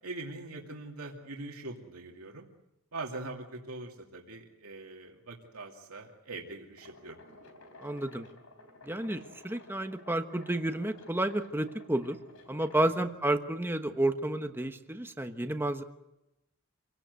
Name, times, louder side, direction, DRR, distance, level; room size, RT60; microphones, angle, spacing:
voice 1, 0.0-2.4 2.9-7.2 12.8-12.9, right 2 dB, 80° right, 1 dB, 2.6 m, -42 dB
sound 1, 6.8-13.1, left 2 dB, 75° left, 4.1 m, -54 dB
voice 2, 7.8-8.3 8.8-12.2 12.5-15.8, right 1 dB, 10° right, 7 dB, 1.1 m, -31 dB
27.0 x 18.0 x 8.2 m, 0.94 s
head